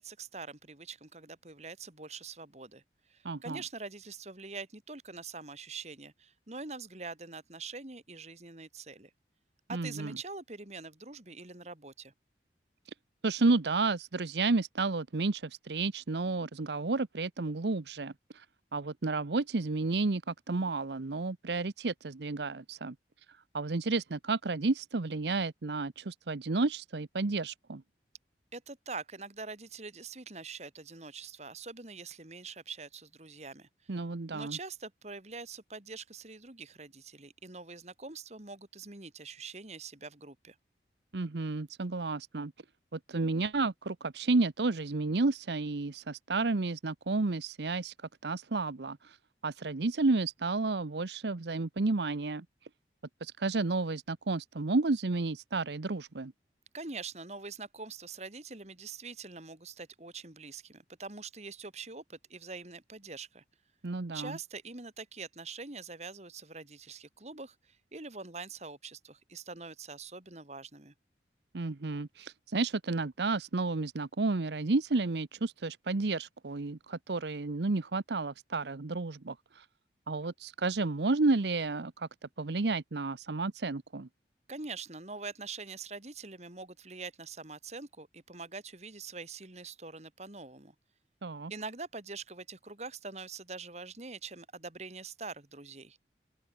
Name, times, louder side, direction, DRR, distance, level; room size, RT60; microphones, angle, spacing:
voice 1, 0.0-2.8 3.1-9.1 9.7-12.1 28.5-33.7 34.3-40.6 56.7-63.4 64.1-70.9 84.5-90.7 91.5-96.0, right 4 dB, 40° right, 2.4 m, -44 dB
voice 2, 3.2-3.6 9.7-10.2 12.9-13.0 13.2-18.5 18.7-22.9 23.3-27.8 33.9-34.6 41.1-42.5 42.9-47.9 48.2-49.2 49.4-52.4 53.2-56.3 63.8-64.4 71.5-79.7 80.1-82.1 82.4-84.1 91.2-91.5, right 3 dB, 75° right, 0.8 m, -31 dB
open air
head